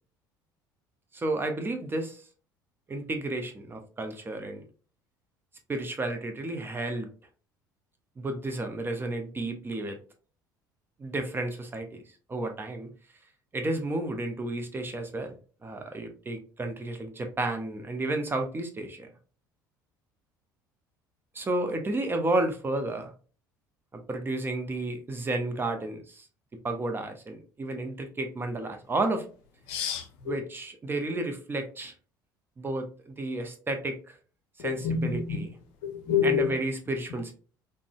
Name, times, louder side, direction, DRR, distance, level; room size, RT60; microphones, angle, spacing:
voice 1, 1.1-2.2 2.9-4.6 5.7-7.1 8.2-10.0 11.0-12.0 12.3-12.9 13.5-15.3 15.6-19.1 21.3-23.1 23.9-26.3 26.6-29.2 30.3-31.9 32.6-34.2 34.6-35.5 36.2-37.3, right 2 dB, 20° right, 0.6 m, -32 dB
voice 2, 29.7-30.3 34.6-35.4 35.8-36.5, left 7 dB, 55° left, 0.6 m, -28 dB
3.7 x 2.1 x 2.3 m
figure-of-eight pair, 60°, 11 cm